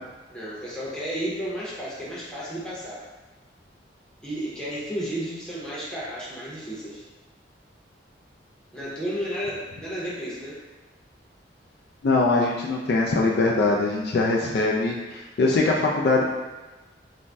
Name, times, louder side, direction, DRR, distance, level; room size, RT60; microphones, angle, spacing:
voice 1, 0.3-3.0 4.2-7.0 8.7-10.6, equal, 5° left, -8 dB, 0.7 m, -32 dB
voice 2, 12.0-16.2, left 3 dB, 60° left, -1 dB, 0.3 m, -22 dB
2.6 x 2.0 x 3.3 m, 1.2 s
head